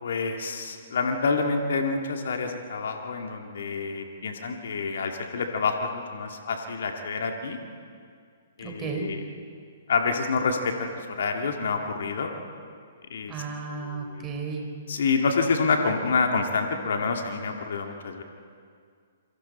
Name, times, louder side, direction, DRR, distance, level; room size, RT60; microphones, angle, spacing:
voice 1, 0.0-7.6 8.6-9.2 9.9-12.3 13.1-13.3 13.8-14.3 14.9-18.2, left 4 dB, 60° left, 3 dB, 2.1 m, -27 dB
voice 2, 8.6-9.1 13.3-14.7, right 4 dB, 25° right, 2 dB, 4.2 m, -34 dB
28.0 x 24.0 x 4.3 m, 2.2 s
figure-of-eight pair, 120°, 0 cm